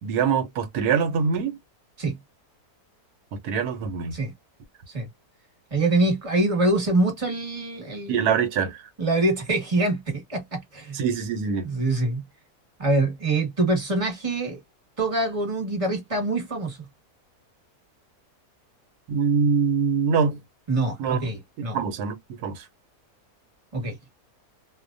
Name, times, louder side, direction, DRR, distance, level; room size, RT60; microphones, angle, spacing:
voice 1, 0.0-1.6 3.3-4.2 8.1-8.8 10.9-11.7 19.1-20.4 21.0-21.2 21.7-22.6, right 6 dB, 90° right, 1.1 m, -24 dB
voice 2, 5.7-8.3 9.0-11.0 11.6-12.2 12.8-14.6 15.0-16.8 20.7-21.8 23.7-23.9, right 2 dB, 20° right, 1.2 m, -25 dB
2.6 x 2.1 x 2.4 m
omnidirectional pair, 1.6 m